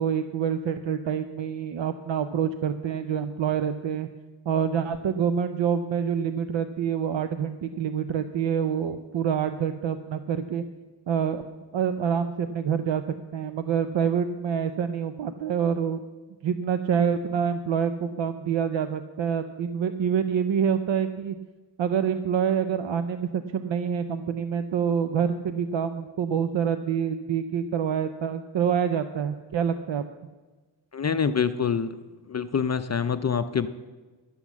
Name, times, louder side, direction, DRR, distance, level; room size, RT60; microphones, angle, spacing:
voice 1, 0.0-4.1 4.5-10.6 11.1-11.4 11.7-13.0 13.3-16.0 16.4-21.4 21.8-30.0, right 7 dB, 75° right, 10 dB, 0.6 m, -26 dB
voice 2, 30.9-32.0 32.3-33.7, left 6 dB, 35° left, 10 dB, 0.5 m, -25 dB
11.5 x 8.1 x 7.1 m, 1.3 s
wide cardioid pair, 105°, 45 cm